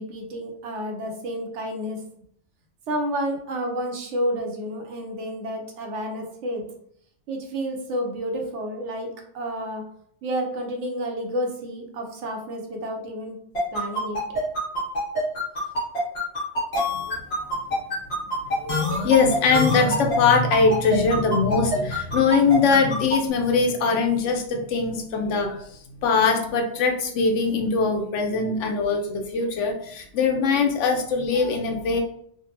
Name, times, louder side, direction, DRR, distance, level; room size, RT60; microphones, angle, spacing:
voice 1, 0.0-2.0 2.9-6.6 7.3-9.8 10.2-13.4 13.7-14.2, equal, 75° right, 2 dB, 1.0 m, -30 dB
sound 1, 13.6-23.2, equal, 60° left, 1.5 m, -25 dB
voice 2, 18.6-32.0, left 4 dB, 75° left, 3 dB, 0.9 m, -22 dB
3.7 x 2.2 x 2.8 m, 0.67 s
omnidirectional pair, 1.3 m